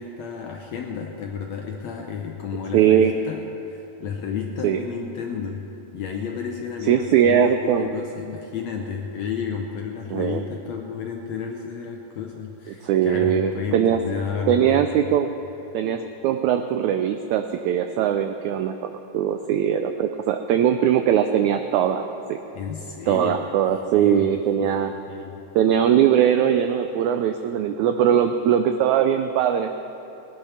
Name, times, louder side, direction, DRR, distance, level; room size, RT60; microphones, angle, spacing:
voice 1, 0.0-15.0 22.5-23.5 23.9-25.4, left 6 dB, 75° left, 2 dB, 1.6 m, -32 dB
voice 2, 2.7-3.1 4.6-4.8 6.9-7.9 10.1-10.4 12.7-14.0 14.5-15.3 15.7-22.4 23.1-24.9 25.5-29.7, right 9 dB, 90° right, 7 dB, 1.6 m, -20 dB
19.5 x 10.5 x 5.7 m, 2.9 s
omnidirectional pair, 4.0 m